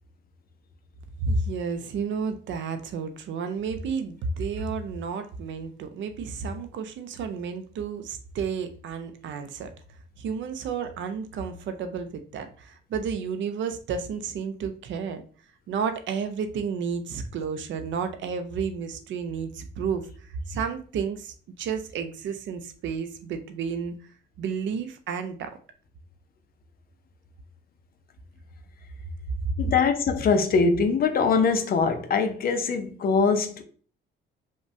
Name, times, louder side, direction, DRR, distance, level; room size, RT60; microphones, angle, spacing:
voice 1, 1.2-9.7 10.2-15.2 15.7-25.6, right 5 dB, 70° right, 0.5 m, -31 dB
voice 2, 29.6-33.6, left 5 dB, 50° left, 0.5 m, -22 dB
3.0 x 2.2 x 2.6 m
cardioid pair, 90°, 20 cm